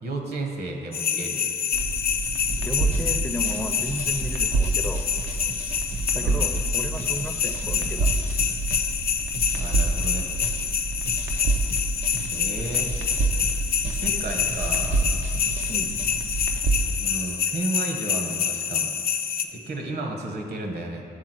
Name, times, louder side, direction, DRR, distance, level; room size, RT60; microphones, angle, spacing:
voice 1, 0.0-1.5 6.2-6.4 9.5-10.3 12.3-12.9 13.8-15.0 17.0-18.9 19.3-21.0, right 2 dB, 60° right, 3 dB, 1.0 m, -33 dB
sound 1, 0.9-19.4, left 7 dB, 55° left, 0.4 m, -27 dB
sound 2, 1.7-16.9, right 3 dB, 75° right, 0.6 m, -28 dB
sound 3, 2.5-9.0 9.3-16.2, right 3 dB, 35° right, 0.6 m, -41 dB
voice 2, 2.6-5.1 6.1-8.1 15.7-15.9, left 1 dB, 10° left, 4 dB, 0.5 m, -33 dB
8.1 x 3.6 x 4.5 m, 2.3 s
supercardioid pair, 50°, 19 cm